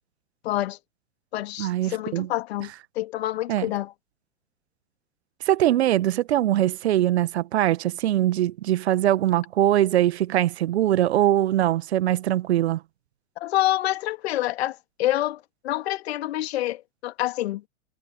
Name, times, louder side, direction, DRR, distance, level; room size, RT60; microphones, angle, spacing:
voice 1, 0.4-0.8 1.3-3.9 13.4-17.7, left 15 dB, 55° left, 2.6 m, -27 dB
voice 2, 1.6-2.3 3.5-3.6 5.4-12.8, right 13 dB, 55° right, 1.6 m, -22 dB
figure-of-eight pair, 100°, 39 cm